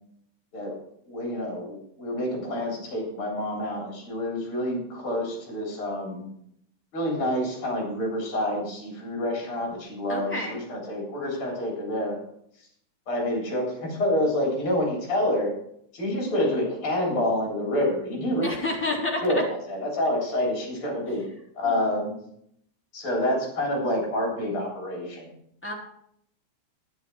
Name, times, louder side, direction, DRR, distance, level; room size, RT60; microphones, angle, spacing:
voice 1, 1.1-6.2 6.9-12.2 13.1-15.5 15.9-18.5 19.2-21.2 21.6-22.2 22.9-25.3, left 1 dB, 45° left, -1 dB, 4.1 m, -27 dB
voice 2, 10.1-10.6 18.4-19.4 21.6-21.9 25.6-25.7, left 2 dB, 5° left, -3 dB, 2.3 m, -29 dB
11.5 x 9.3 x 4.6 m, 0.70 s
omnidirectional pair, 3.5 m